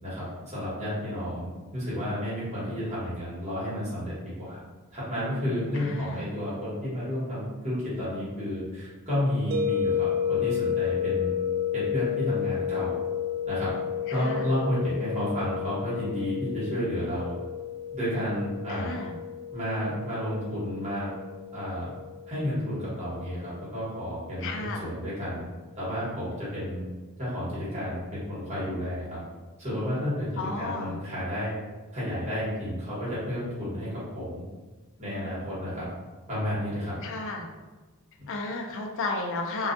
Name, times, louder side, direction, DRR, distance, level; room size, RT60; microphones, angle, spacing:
voice 1, 0.0-4.1 4.4-4.6 4.9-11.3 11.7-13.0 13.5-13.7 14.1-17.3 17.9-18.9 19.5-21.1 21.5-21.9 22.3-25.4 25.8-26.8 27.2-29.2 29.6-31.5 31.9-33.9 34.1-34.4 35.0-35.9 36.3-37.0 38.2-38.3, equal, 30° right, -9 dB, 1.2 m, -31 dB
voice 2, 5.7-6.2 14.1-14.5 18.7-19.1 24.4-24.8 30.4-30.9 37.0-37.4 38.3-39.7, left 3 dB, 60° left, 2 dB, 0.4 m, -33 dB
sound 1, 9.5-24.4, left 8 dB, 60° right, 0.4 m, -32 dB
2.5 x 2.3 x 2.5 m, 1.3 s
head